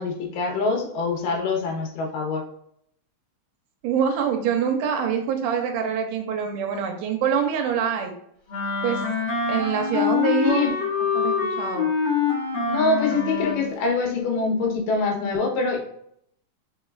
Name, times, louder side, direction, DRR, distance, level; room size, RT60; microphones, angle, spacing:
voice 1, 0.0-2.4 10.4-10.7 12.7-15.8, left 3 dB, 90° left, 1 dB, 2.6 m, -24 dB
voice 2, 3.8-8.1 8.8-9.0 9.5-10.7 11.1-11.9, right 7 dB, 85° right, 4 dB, 2.3 m, -25 dB
Wind instrument woodwind instrument, 8.5-13.7, left 5 dB, 60° left, 2.2 m, -25 dB
5.0 x 4.0 x 2.3 m, 0.71 s
omnidirectional pair, 3.7 m